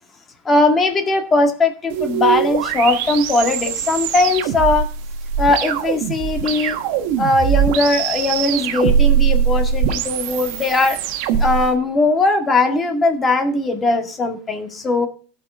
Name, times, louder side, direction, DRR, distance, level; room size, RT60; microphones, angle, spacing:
voice 1, 0.5-4.9 5.4-6.8 7.2-11.0 11.4-15.1, left 2 dB, 20° left, 5 dB, 1.9 m, -19 dB
sound 1, 1.9-11.7, right 8 dB, 60° right, 1.4 m, -21 dB
17.5 x 6.0 x 3.7 m, 0.40 s
supercardioid pair, 145°, 0 cm